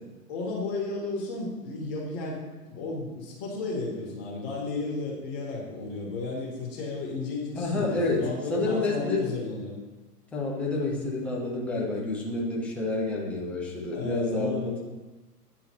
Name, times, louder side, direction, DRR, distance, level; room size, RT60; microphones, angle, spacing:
voice 1, 0.3-9.7 10.8-11.1 13.9-14.8, left 3 dB, 35° left, -3 dB, 1.8 m, -33 dB
voice 2, 7.6-9.3 10.3-14.8, left 2 dB, 5° left, -4 dB, 0.5 m, -29 dB
9.8 x 3.7 x 3.1 m, 1.2 s
hypercardioid pair, 115°, 47 cm